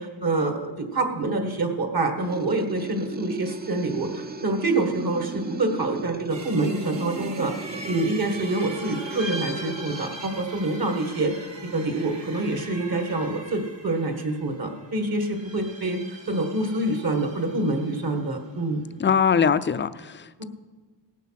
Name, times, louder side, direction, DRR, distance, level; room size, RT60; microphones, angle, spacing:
voice 1, 0.0-7.5 7.9-11.5 11.7-18.8 20.4-20.5, right 2 dB, 55° right, 5 dB, 1.7 m, -26 dB
sound 1, 2.2-10.4, right 3 dB, 20° right, 0.5 m, -37 dB
sound 2, 6.3-18.3, right 2 dB, 75° right, 2.3 m, -41 dB
voice 2, 19.0-20.4, left 6 dB, 30° left, 14 dB, 0.4 m, -22 dB
18.0 x 7.3 x 5.8 m, 1.3 s
wide cardioid pair, 105°, 44 cm